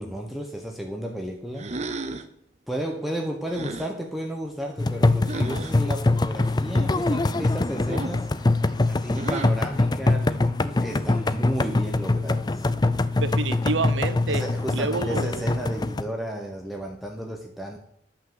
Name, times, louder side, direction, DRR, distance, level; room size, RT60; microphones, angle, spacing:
voice 1, 0.0-1.7 2.7-8.3 8.9-12.7 14.3-17.8, equal, ahead, 1 dB, 1.2 m, -33 dB
sound 1, 1.6-2.3 3.5-3.9 5.3-5.7 7.9-8.3 9.1-9.7, right 3 dB, 35° right, 0.8 m, -33 dB
sound 2, 4.8-16.0, left 2 dB, 20° left, 0.4 m, -24 dB
voice 2, 13.2-14.4 14.7-15.5, right 3 dB, 80° right, 12 dB, 1.0 m, -28 dB
11.5 x 5.8 x 7.7 m, 0.68 s
head